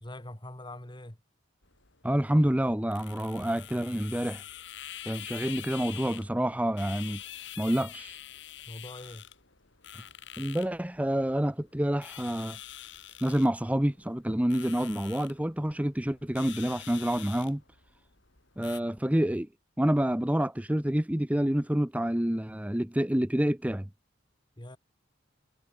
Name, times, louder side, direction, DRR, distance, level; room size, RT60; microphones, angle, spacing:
voice 1, 0.0-1.2 8.7-9.3 24.6-24.8, left 1 dB, 25° left, 2.4 m, -43 dB
sound 1, 1.6-18.8, left 12 dB, 65° left, 6.5 m, -46 dB
voice 2, 2.0-4.4 5.1-7.2 7.6-8.2 10.4-12.6 13.2-17.6 18.6-19.5 19.8-23.9, equal, 5° right, 0.8 m, -28 dB
head